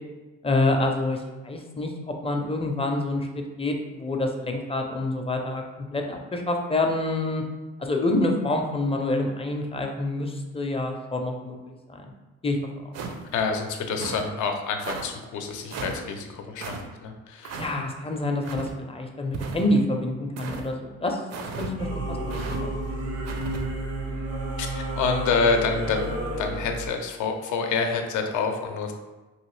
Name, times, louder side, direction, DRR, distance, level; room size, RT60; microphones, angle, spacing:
voice 1, 0.4-3.3 3.6-7.4 7.8-12.1 12.4-12.6 17.6-22.7, left 2 dB, 20° left, 3 dB, 0.4 m, -27 dB
sound 1, 12.9-13.4 13.9-14.3 14.8-15.1 15.7-16.0 16.6-16.8 17.4-17.7 18.4-18.7 19.3-19.8 20.4-20.7 21.3-21.7 22.3-22.6 23.3-23.6, right 4 dB, 60° right, 0.5 m, -35 dB
voice 2, 13.3-17.6 24.6-28.9, left 4 dB, 80° left, 4 dB, 0.5 m, -27 dB
Singing / Musical instrument, 21.8-26.9, right 1 dB, 80° right, 0.9 m, -31 dB
3.0 x 2.7 x 3.1 m, 1.2 s
cardioid pair, 90°, 30 cm